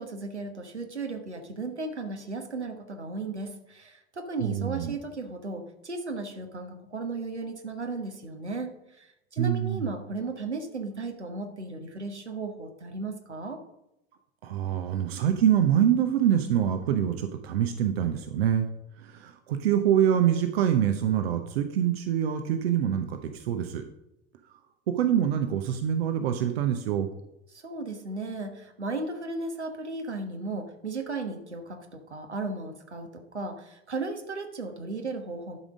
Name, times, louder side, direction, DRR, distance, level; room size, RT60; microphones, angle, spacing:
voice 1, 0.0-13.6 27.5-35.6, right 3 dB, 85° right, 4 dB, 1.3 m, -35 dB
voice 2, 4.4-4.9 9.4-9.9 14.4-18.7 19.0-23.8 24.9-27.1, right 9 dB, 65° right, 7 dB, 0.9 m, -25 dB
11.0 x 5.1 x 6.2 m, 0.86 s
figure-of-eight pair, 70°, 33 cm